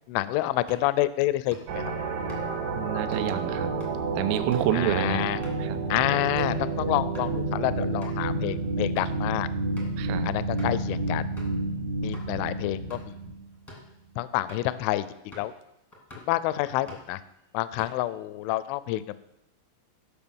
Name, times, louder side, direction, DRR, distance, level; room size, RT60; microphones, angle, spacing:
voice 1, 0.1-1.8 4.7-5.4 5.9-9.5 10.2-11.2 12.0-13.1 14.2-15.1 15.4-15.5 16.2-17.2 17.5-19.2, left 15 dB, 85° left, 16 dB, 2.8 m, -28 dB
sound 1, 0.6-6.6 7.0-7.3 7.7-7.8 8.0-8.2 8.7-9.2 9.7-10.0 10.6-10.9 11.4-11.6 12.1-12.3 12.7-13.2 13.5-13.9 14.5-14.8 15.3-15.6 15.9-16.3 16.7-17.2 17.5-18.2, left 1 dB, 15° left, 0.5 m, -48 dB
sound 2, 1.7-13.4, right 2 dB, 70° right, 3.9 m, -30 dB
voice 2, 2.7-3.7 4.2-5.2 5.6-5.8 10.0-10.3, right 12 dB, 85° right, 10 dB, 3.3 m, -28 dB
15.0 x 5.7 x 7.0 m, 0.86 s
omnidirectional pair, 5.8 m